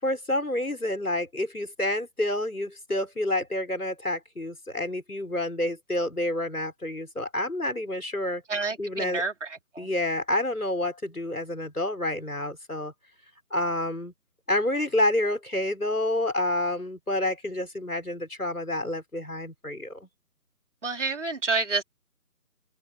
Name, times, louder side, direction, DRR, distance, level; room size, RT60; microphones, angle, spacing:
voice 1, 0.0-8.4 8.8-9.2 9.8-12.9 13.5-14.1 14.5-20.1, left 1 dB, 85° left, 6.2 m, -28 dB
voice 2, 8.5-9.5 9.7-9.9 20.8-21.8, right 3 dB, 55° right, 4.3 m, -28 dB
open air
figure-of-eight pair, 155°, 44 cm